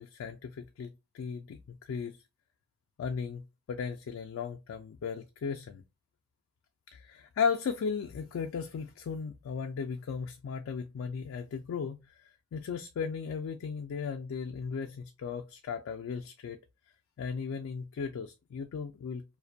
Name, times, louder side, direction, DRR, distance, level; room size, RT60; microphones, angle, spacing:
voice 1, 0.0-2.2 3.0-5.8 6.9-16.6 17.2-19.2, left 6 dB, 90° left, 0.3 m, -36 dB
2.4 x 2.1 x 2.5 m
head